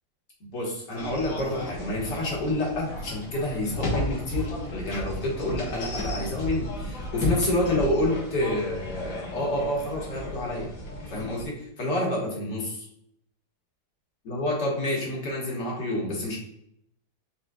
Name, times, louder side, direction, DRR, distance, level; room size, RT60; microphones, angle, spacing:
voice 1, 0.4-10.7 11.1-12.9 14.2-16.4, left 1 dB, 65° left, -3 dB, 2.1 m, -28 dB
sound 1, 1.0-11.4, left 1 dB, 90° left, 2.0 m, -34 dB
5.2 x 4.3 x 2.3 m, 0.75 s
omnidirectional pair, 2.1 m